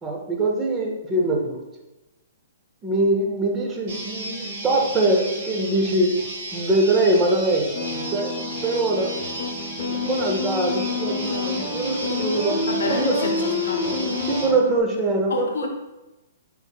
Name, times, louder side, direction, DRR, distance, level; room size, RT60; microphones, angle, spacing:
voice 1, 0.0-1.6 2.8-6.2 6.5-9.1 9.9-13.2 14.3-15.7, right 2 dB, 15° right, 1 dB, 0.6 m, -23 dB
sound 1, 3.9-14.5, right 2 dB, 45° right, 1.3 m, -34 dB
sound 2, 7.7-14.8, left 3 dB, 50° left, 0.7 m, -28 dB
voice 2, 12.6-14.3 15.3-15.7, left 4 dB, 90° left, 3 dB, 0.7 m, -29 dB
4.1 x 4.0 x 2.3 m, 1.0 s
hypercardioid pair, 155°, 0 cm